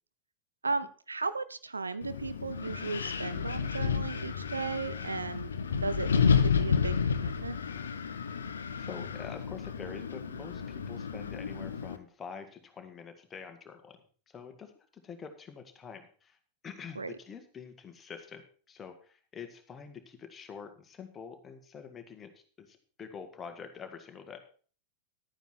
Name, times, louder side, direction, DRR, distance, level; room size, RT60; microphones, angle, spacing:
voice 1, 0.6-5.5 5.8-7.6 17.0-17.1, right 4 dB, 80° right, 14 dB, 0.6 m, -36 dB
Wind, 2.0-12.0, left 6 dB, 70° left, 0.8 m, -31 dB
voice 2, 8.8-14.0 14.3-16.4 16.6-22.3 22.6-24.4, left 6 dB, 20° left, 6 dB, 1.7 m, -46 dB
11.5 x 9.1 x 4.4 m, 0.42 s
figure-of-eight pair, 90°, 0 cm